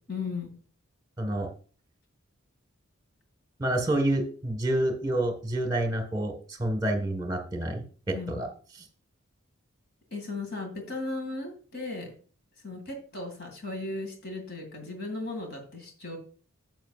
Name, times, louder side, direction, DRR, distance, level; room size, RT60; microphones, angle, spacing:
voice 1, 0.1-0.5 8.1-8.5 10.1-12.1 12.6-16.2, left 3 dB, 50° left, 4 dB, 2.3 m, -36 dB
voice 2, 1.2-1.5 3.6-8.5, right 1 dB, 20° right, 5 dB, 1.4 m, -28 dB
10.5 x 7.9 x 2.4 m, 0.40 s
head